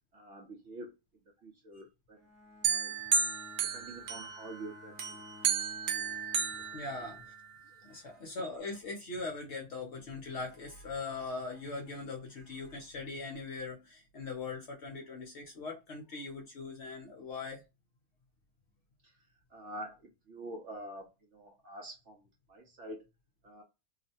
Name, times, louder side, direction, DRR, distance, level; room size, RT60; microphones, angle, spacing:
voice 1, 0.1-0.9 1.4-2.3 2.7-3.0 3.6-5.2 5.6-5.7 5.9-6.9 7.7-7.9 19.0-19.2 19.5-23.1 23.4-23.6, right 1 dB, 60° right, 0.8 m, -47 dB
Bowed string instrument, 2.1-7.9, left 3 dB, 30° right, 0.9 m, -55 dB
sound 1, 2.6-4.6 5.0-7.5, right 6 dB, 90° right, 1.2 m, -33 dB
voice 2, 6.7-7.3 7.8-17.6, left 3 dB, 60° left, 0.8 m, -41 dB
2.9 x 2.1 x 2.7 m
omnidirectional pair, 1.7 m